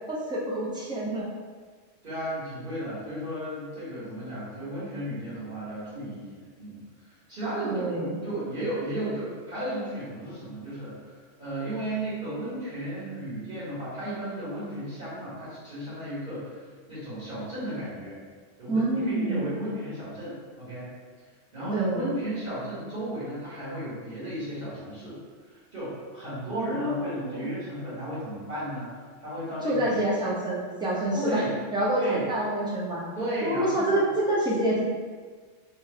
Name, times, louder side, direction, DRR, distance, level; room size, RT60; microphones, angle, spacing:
voice 1, 0.1-1.3 3.1-3.2 7.6-8.2 18.7-19.7 21.7-22.1 26.6-27.5 29.6-31.4 31.7-33.0 33.4-34.8, right 1 dB, 5° right, -7 dB, 0.6 m, -27 dB
voice 2, 2.0-6.8 7.3-16.6 16.9-18.2 18.6-20.9 21.5-25.2 25.5-30.0 31.1-31.5 31.9-32.3 33.2-34.0, right 1 dB, 45° right, -13 dB, 1.8 m, -34 dB
3.3 x 2.5 x 4.4 m, 1.5 s
omnidirectional pair, 1.2 m